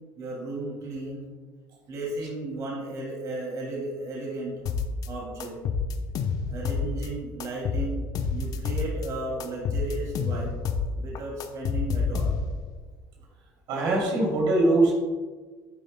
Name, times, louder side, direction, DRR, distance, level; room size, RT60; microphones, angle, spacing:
voice 1, 0.2-1.3 1.9-4.5 5.1-5.6 6.5-10.6 10.9-12.3, right 2 dB, 45° right, -3 dB, 2.5 m, -34 dB
sound 1, 4.7-5.1 5.4-7.1 7.4-9.1 9.4-10.9 11.2-12.7, left 5 dB, 50° left, 0.8 m, -28 dB
voice 2, 13.7-14.9, right 2 dB, 70° right, -2 dB, 2.8 m, -22 dB
11.0 x 9.4 x 2.2 m, 1.4 s
cardioid pair, 135°, 8 cm